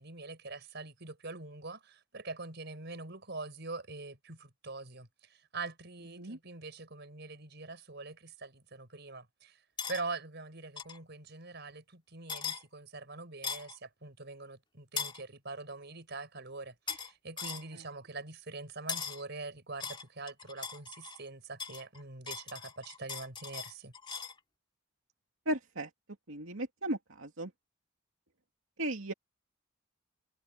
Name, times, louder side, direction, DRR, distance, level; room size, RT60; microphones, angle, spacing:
voice 1, 0.0-9.6 9.9-23.9, right 3 dB, 55° right, 5.2 m, -44 dB
sound 1, 9.8-10.0 10.8-11.0 12.3-12.6 13.4-13.8 15.0-15.2 16.9-17.1 17.4-17.7 18.9-19.2 19.8-21.2 21.6-24.4, left 6 dB, 25° left, 3.7 m, -39 dB
voice 2, 25.5-25.9 26.3-27.5 28.8-29.1, right 1 dB, 80° right, 2.6 m, -35 dB
head